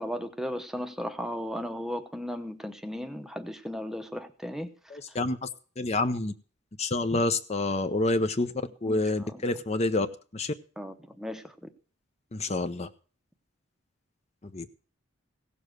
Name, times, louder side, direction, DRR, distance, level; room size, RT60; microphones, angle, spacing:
voice 1, 0.0-4.7 8.9-9.4 10.8-11.7, equal, ahead, 7 dB, 0.8 m, -36 dB
voice 2, 4.9-5.5 5.8-6.3 6.8-8.5 8.8-10.1 10.3-10.5 12.3-12.9 14.5-14.7, left 2 dB, 30° left, 10 dB, 0.7 m, -28 dB
16.5 x 7.1 x 6.4 m, 0.40 s
head